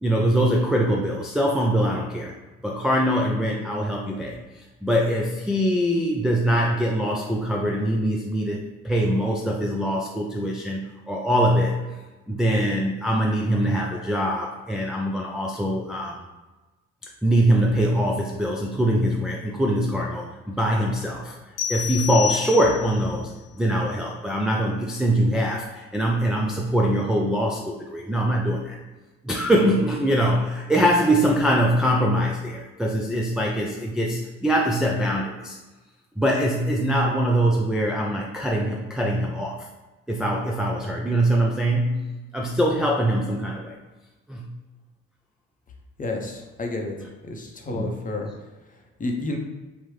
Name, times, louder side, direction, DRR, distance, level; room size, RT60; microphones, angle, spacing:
voice 1, 0.0-2.3 2.6-11.8 12.3-16.2 17.2-21.4 21.7-28.8 29.2-35.6 36.2-39.7 40.1-43.8 44.3-44.5 47.7-48.0, equal, ahead, -2 dB, 0.3 m, -23 dB
sound 1, 21.6-23.1, left 9 dB, 75° left, 0.6 m, -29 dB
voice 2, 46.0-47.0 47.3-48.3 49.0-49.4, left 2 dB, 25° left, 2 dB, 0.7 m, -30 dB
3.3 x 2.0 x 3.1 m, 1.2 s
hypercardioid pair, 55°, 30 cm